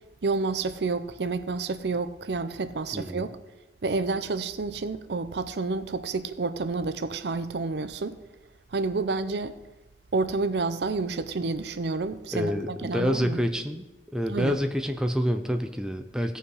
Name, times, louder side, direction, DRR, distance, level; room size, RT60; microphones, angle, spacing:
voice 1, 0.2-3.4 3.8-8.2 8.7-9.5 10.1-13.4 14.3-14.6, right 3 dB, 70° right, 0.6 m, -29 dB
voice 2, 2.9-3.3 12.3-13.8 14.1-16.4, equal, 5° right, 0.6 m, -27 dB
16.5 x 5.6 x 4.9 m
head